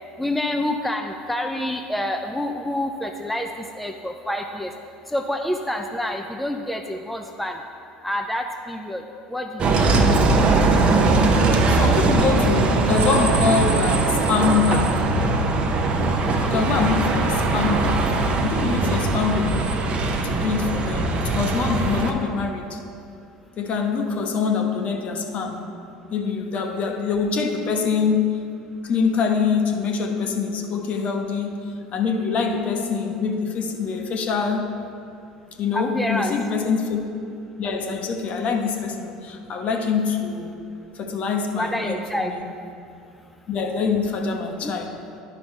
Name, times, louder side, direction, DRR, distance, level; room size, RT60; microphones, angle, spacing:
voice 1, 0.2-4.7 5.1-7.6 8.0-9.0 9.3-10.0 16.3-16.8 35.7-36.3 41.6-42.3 44.6-44.7, left 1 dB, 5° left, 4 dB, 0.5 m, -28 dB
Bus, 9.6-22.1, right 3 dB, 40° right, 0.9 m, -20 dB
voice 2, 11.5-15.1 16.4-19.8 20.2-22.8 23.6-25.6 26.1-28.4 28.8-34.8 35.6-37.0 37.6-40.6 40.9-42.5 43.5-44.9, left 5 dB, 45° left, 3 dB, 1.1 m, -24 dB
10.5 x 5.3 x 4.4 m, 2.5 s
hypercardioid pair, 75°, 3 cm